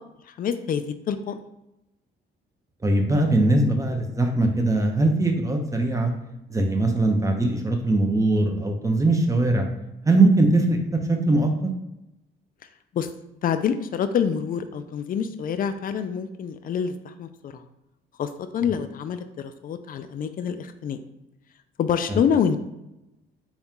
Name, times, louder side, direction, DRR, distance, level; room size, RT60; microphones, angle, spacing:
voice 1, 0.4-1.4 12.9-13.1 13.4-17.6 18.2-21.0 21.8-22.6, left 7 dB, 45° left, 10 dB, 0.4 m, -26 dB
voice 2, 2.8-6.1 6.5-9.7 10.0-11.5 22.1-22.2, right 2 dB, 15° right, 3 dB, 0.7 m, -21 dB
4.0 x 2.3 x 3.6 m, 0.91 s
cardioid pair, 90°, 20 cm